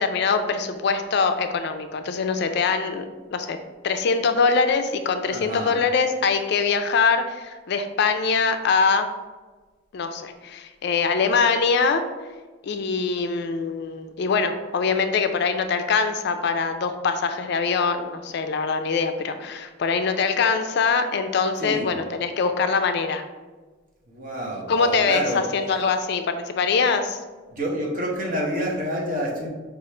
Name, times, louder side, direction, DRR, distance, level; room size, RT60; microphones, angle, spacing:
voice 1, 0.0-3.0 3.3-3.6 3.8-9.1 9.9-12.0 12.6-23.2 24.7-27.2, left 5 dB, 55° left, 8 dB, 0.3 m, -23 dB
voice 2, 5.3-5.8 21.6-21.9 24.1-25.4 27.5-29.5, equal, 40° right, -2 dB, 0.9 m, -28 dB
4.9 x 2.4 x 4.2 m, 1.3 s
head